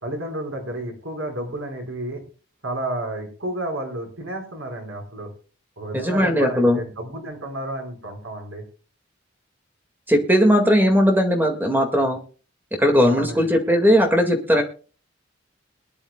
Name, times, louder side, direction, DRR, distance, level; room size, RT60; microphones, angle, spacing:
voice 1, 0.0-2.2 2.6-5.3 5.8-8.6 13.1-13.4, right 1 dB, 85° right, 3 dB, 4.9 m, -31 dB
voice 2, 5.9-6.8 10.1-12.2 12.8-14.6, equal, 10° right, 5 dB, 2.0 m, -18 dB
22.5 x 10.5 x 2.3 m, 0.37 s
head